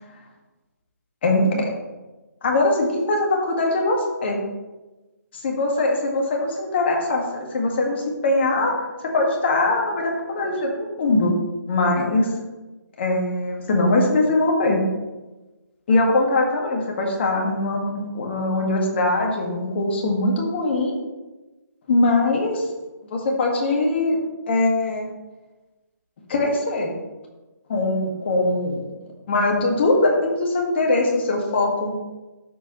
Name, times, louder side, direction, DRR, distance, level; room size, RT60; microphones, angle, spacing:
voice 1, 1.2-1.7 2.4-4.4 5.4-7.2 7.5-8.7 9.0-11.3 11.7-12.3 13.0-14.8 15.9-20.9 21.9-22.7 23.0-24.2 24.5-25.1 26.3-26.9 27.7-28.8 29.3-31.9, left 2 dB, 35° left, 0 dB, 1.8 m, -21 dB
12.5 x 4.8 x 3.1 m, 1.1 s
hypercardioid pair, 160°, 10 cm